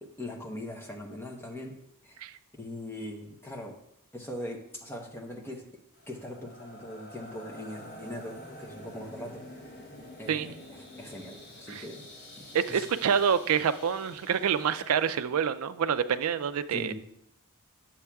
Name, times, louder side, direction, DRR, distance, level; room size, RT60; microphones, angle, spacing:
voice 1, 0.0-1.8 2.0-2.2 2.6-3.8 4.1-5.7 6.1-9.9 10.2-12.1 12.4-12.9 16.7-16.9, left 1 dB, 10° left, 1 dB, 0.8 m, -41 dB
sound 1, 5.9-15.2, left 1 dB, 50° left, 2.3 m, -48 dB
voice 2, 12.5-16.9, right 7 dB, 70° right, 11 dB, 0.4 m, -27 dB
9.8 x 7.2 x 2.3 m, 0.75 s
head